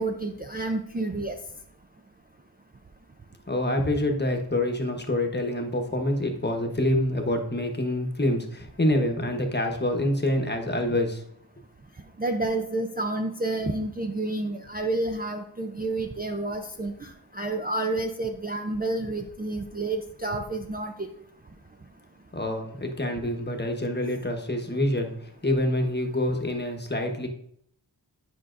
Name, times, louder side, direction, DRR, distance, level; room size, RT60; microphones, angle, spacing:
voice 1, 0.0-1.3 12.2-21.1, right 2 dB, 20° right, 3 dB, 0.5 m, -29 dB
voice 2, 3.5-11.2 22.3-25.1 25.4-27.3, left 1 dB, 25° left, 3 dB, 1.0 m, -26 dB
10.0 x 5.4 x 2.5 m, 0.68 s
wide cardioid pair, 85°, 43 cm